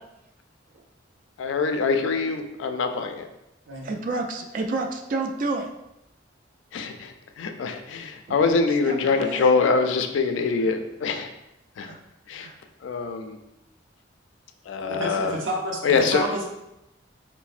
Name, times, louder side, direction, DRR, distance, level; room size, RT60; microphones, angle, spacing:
voice 1, 1.4-3.3 6.7-11.3 11.8-11.9 12.3-12.5 12.8-13.4 14.7-15.4 15.8-16.3, left 4 dB, 75° left, 6 dB, 0.3 m, -24 dB
voice 2, 3.8-5.7 8.9-9.6 11.8-12.0 12.4-12.6, right 3 dB, 45° right, 3 dB, 0.3 m, -30 dB
voice 3, 14.8-15.8 16.1-16.4, right 1 dB, 80° right, 0 dB, 0.6 m, -29 dB
4.1 x 2.0 x 2.4 m, 0.89 s
head